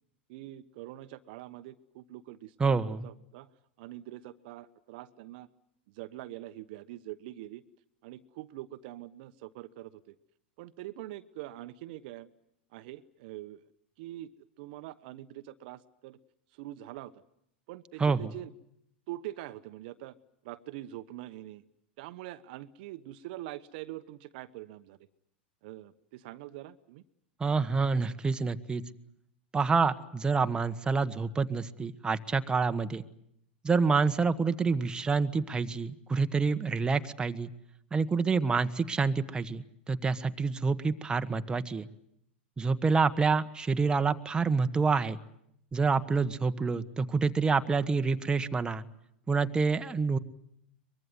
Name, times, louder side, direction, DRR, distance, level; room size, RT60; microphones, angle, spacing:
voice 1, 0.3-3.5 3.8-5.5 5.9-7.6 8.0-10.1 10.6-12.3 12.7-13.6 14.0-14.3 14.6-16.2 16.5-17.1 17.7-18.5 19.1-20.1 20.4-21.6 22.0-25.0 25.6-27.0, right 15 dB, 55° right, 12 dB, 1.1 m, -44 dB
voice 2, 2.6-3.1 18.0-18.3 27.4-28.8 29.5-33.0 33.6-37.5 37.9-41.9 42.6-45.2 45.7-48.8 49.3-50.2, right 4 dB, 15° right, 8 dB, 1.4 m, -27 dB
23.5 x 22.0 x 9.6 m, 0.76 s
hypercardioid pair, 100°, 6 cm